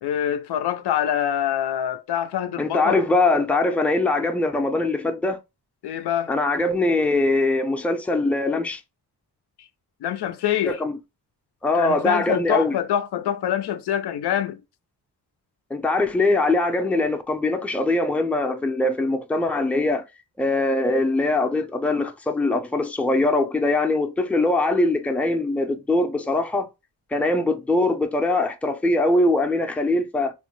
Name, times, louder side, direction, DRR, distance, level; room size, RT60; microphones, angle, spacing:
voice 1, 0.0-3.1 5.8-6.3 10.0-10.8 11.7-14.6, left 10 dB, 70° left, 0.5 m, -25 dB
voice 2, 2.6-5.4 6.3-8.8 10.7-10.9 11.6-12.8 15.7-20.0 20.4-26.7 27.1-30.3, left 2 dB, 5° left, 0.5 m, -22 dB
3.0 x 2.1 x 3.0 m
cardioid pair, 70°, 42 cm